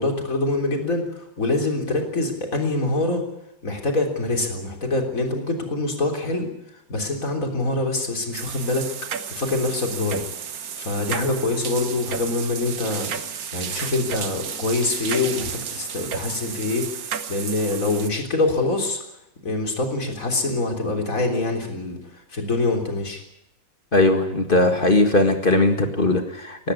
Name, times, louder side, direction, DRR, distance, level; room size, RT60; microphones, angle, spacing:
voice 1, 0.0-3.2 3.6-8.9 9.3-10.2 10.8-19.0 19.4-23.2, left 2 dB, 45° left, 3 dB, 3.9 m, -25 dB
sound 1, 8.3-18.1, right 7 dB, 55° right, 1.5 m, -32 dB
voice 2, 23.9-26.7, left 2 dB, 30° left, 5 dB, 1.9 m, -19 dB
18.0 x 16.5 x 9.7 m, 0.83 s
omnidirectional pair, 2.0 m